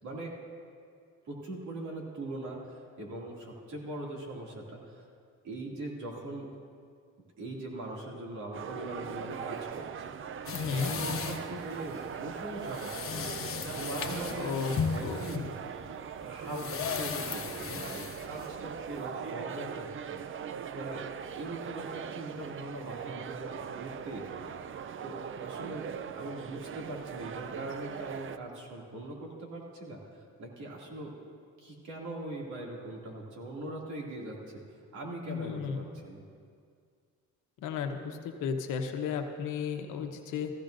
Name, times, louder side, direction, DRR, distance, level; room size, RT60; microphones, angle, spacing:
voice 1, 0.0-0.4 1.3-5.0 5.4-6.5 7.4-10.1 10.6-13.4 13.8-15.4 16.2-21.1 21.4-24.5 25.0-31.2 31.6-34.4 34.9-36.2, right 1 dB, 70° right, -2 dB, 2.5 m, -41 dB
sound 1, 8.5-28.4, right 7 dB, 45° right, 0.5 m, -40 dB
voice 2, 10.5-10.9 14.3-14.7 15.0-15.3 35.3-35.8 37.6-40.5, left 6 dB, 90° left, 5 dB, 1.0 m, -34 dB
sound 2, 10.5-19.1, left 6 dB, 45° left, 0.9 m, -36 dB
15.5 x 15.0 x 2.6 m, 2.2 s
cardioid pair, 90°, 30 cm